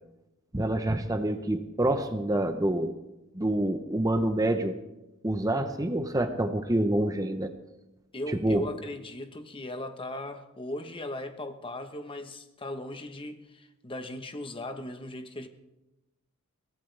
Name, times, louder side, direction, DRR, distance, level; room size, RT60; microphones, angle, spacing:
voice 1, 0.5-2.9 3.3-4.8 5.2-7.5 8.4-8.6, right 1 dB, 15° right, 0.8 m, -27 dB
voice 2, 8.1-15.5, left 1 dB, 25° left, 1.1 m, -38 dB
22.5 x 17.0 x 3.4 m
head